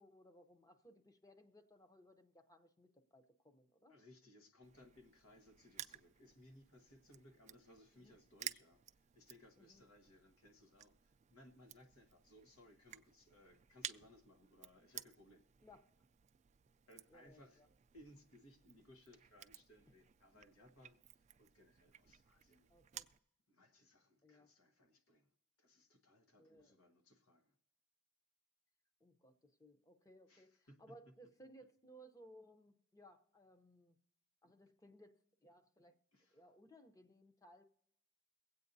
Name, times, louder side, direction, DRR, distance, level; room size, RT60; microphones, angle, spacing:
voice 1, 0.0-4.0 7.9-8.2 9.6-9.8 15.6-15.8 17.1-17.7 19.9-20.0 22.7-23.1 24.2-24.5 26.4-26.7 29.0-34.0 34.4-36.0 36.3-37.6, equal, 15° left, 0.7 m, -63 dB
voice 2, 3.9-8.8 9.1-15.5 16.9-17.6 17.9-22.7 23.5-25.3 25.6-27.5 30.3-30.9 36.1-36.5, left 1 dB, 85° left, 1.3 m, -64 dB
Crushing, 4.6-23.2, right 11 dB, 35° right, 0.3 m, -55 dB
23.0 x 8.3 x 2.7 m
head